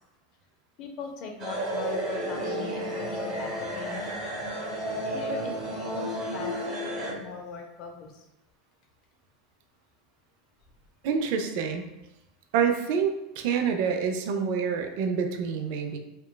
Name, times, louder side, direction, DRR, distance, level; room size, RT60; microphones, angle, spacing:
voice 1, 0.8-4.2 5.1-8.2, left 4 dB, 55° left, 2 dB, 0.5 m, -40 dB
sound 1, 1.4-7.1, equal, 40° right, 1.0 m, -32 dB
voice 2, 11.0-11.8 12.5-16.0, right 6 dB, 65° right, 5 dB, 0.3 m, -27 dB
2.9 x 2.2 x 2.2 m, 0.93 s
hypercardioid pair, 95°, 0 cm